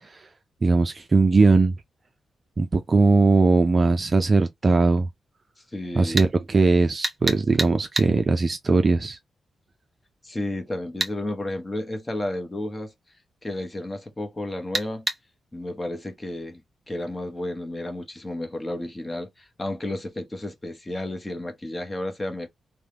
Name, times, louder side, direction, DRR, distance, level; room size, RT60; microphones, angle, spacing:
voice 1, 0.6-1.7 2.6-5.1 6.0-9.2, right 3 dB, 30° right, 0.4 m, -19 dB
voice 2, 5.7-6.2 10.2-12.9 13.4-15.1 15.5-16.6 16.9-22.5, left 1 dB, 15° left, 0.9 m, -32 dB
sound 1, 6.2-6.3 7.0-8.1 11.0-11.2 14.7-15.2, right 1 dB, 15° right, 1.0 m, -26 dB
3.4 x 2.2 x 2.9 m
wide cardioid pair, 130°, 0 cm